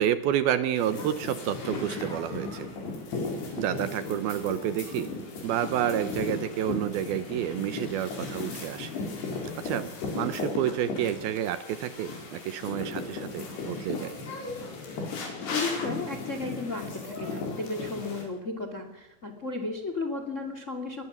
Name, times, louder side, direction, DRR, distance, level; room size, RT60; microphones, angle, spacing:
voice 1, 0.0-2.7 3.6-5.1 5.4-8.9 9.6-9.9 10.2-14.1, right 11 dB, 75° right, 13 dB, 2.5 m, -29 dB
sound 1, 0.8-18.2, left 3 dB, 70° left, 6.6 m, -36 dB
voice 2, 15.5-21.0, left 3 dB, 25° left, 7 dB, 1.7 m, -34 dB
21.5 x 20.0 x 7.3 m, 0.88 s
omnidirectional pair, 4.9 m